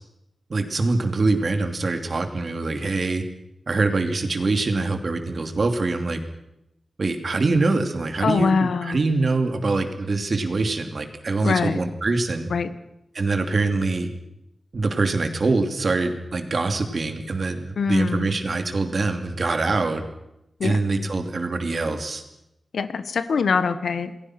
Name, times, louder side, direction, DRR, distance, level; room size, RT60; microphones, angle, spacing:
voice 1, 0.5-3.2 3.7-6.2 7.0-12.5 13.1-14.1 14.7-20.0 20.6-22.2, right 3 dB, 45° right, 7 dB, 2.9 m, -24 dB
voice 2, 8.2-9.0 11.4-11.8 12.5-12.7 17.8-18.3 20.6-20.8 22.7-24.2, left 5 dB, 90° left, 12 dB, 1.6 m, -23 dB
28.5 x 21.0 x 6.2 m, 0.86 s
wide cardioid pair, 175°, 0 cm